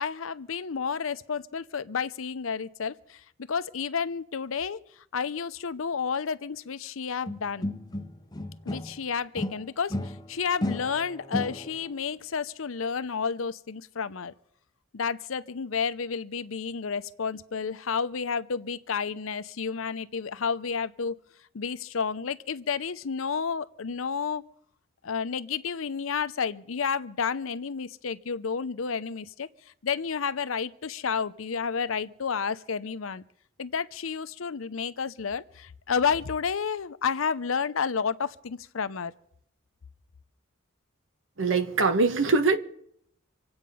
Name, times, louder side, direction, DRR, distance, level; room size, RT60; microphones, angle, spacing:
voice 1, 0.0-3.2 3.5-4.8 5.1-7.7 8.7-14.3 14.9-21.2 21.5-24.4 25.0-29.5 29.8-33.2 33.6-39.1, left 6 dB, 85° left, 0.6 m, -31 dB
sound 1, 7.3-9.0 9.4-11.9, left 1 dB, 20° left, 0.7 m, -34 dB
voice 2, 41.4-42.6, right 4 dB, 75° right, 1.3 m, -22 dB
26.0 x 8.8 x 5.5 m
head